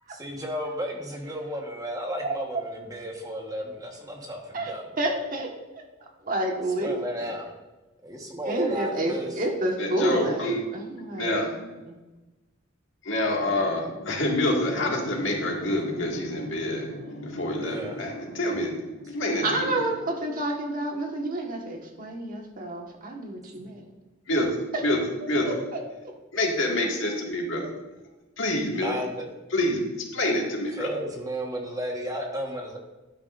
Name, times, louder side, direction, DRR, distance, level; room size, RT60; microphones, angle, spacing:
voice 1, 0.1-4.8 6.8-7.5 8.0-9.3 17.6-18.0 23.6-23.7 28.8-29.3 30.7-32.8, right 1 dB, 20° right, 1 dB, 1.3 m, -33 dB
voice 2, 4.5-5.8 6.2-7.3 8.4-12.0 19.4-23.8 25.4-25.8, right 1 dB, 45° right, 1 dB, 1.4 m, -30 dB
voice 3, 9.8-10.6 11.2-11.5 13.0-19.8 24.3-24.5 24.8-25.0 25.3-25.5 26.3-27.7 28.4-29.0 29.5-30.9, left 1 dB, 70° left, 0 dB, 2.0 m, -27 dB
12.5 x 9.4 x 2.5 m, 1.1 s
head